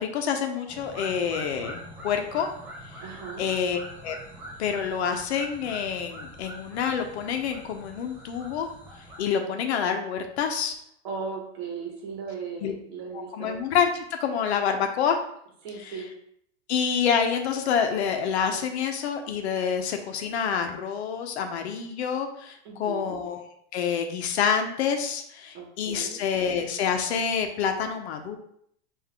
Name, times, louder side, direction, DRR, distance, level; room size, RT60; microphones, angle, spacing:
voice 1, 0.0-2.5 3.4-4.2 4.6-8.7 9.2-10.7 12.6-12.7 13.1-15.2 15.8-15.9 16.7-23.5 23.7-28.4, left 7 dB, 75° left, 6 dB, 0.8 m, -27 dB
sound 1, 0.7-9.2, equal, 5° right, 0.4 m, -43 dB
voice 2, 3.0-3.5 11.0-13.6 15.6-16.1 22.6-23.2 25.5-26.2, right 5 dB, 45° right, 1 dB, 1.0 m, -37 dB
3.6 x 2.5 x 3.7 m, 0.68 s
supercardioid pair, 155°, 33 cm